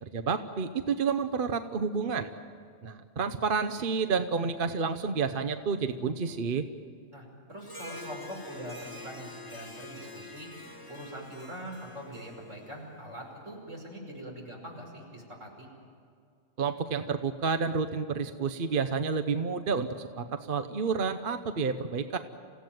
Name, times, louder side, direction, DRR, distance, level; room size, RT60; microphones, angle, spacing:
voice 1, 0.0-2.3 2.8-6.6 16.6-22.2, right 5 dB, 50° right, 9 dB, 1.0 m, -30 dB
voice 2, 7.1-10.5 10.9-15.7, equal, 80° right, 0 dB, 6.1 m, -43 dB
Harp, 7.6-13.3, left 2 dB, 15° left, 1.9 m, -46 dB
28.0 x 16.5 x 9.2 m, 2.3 s
omnidirectional pair, 1.3 m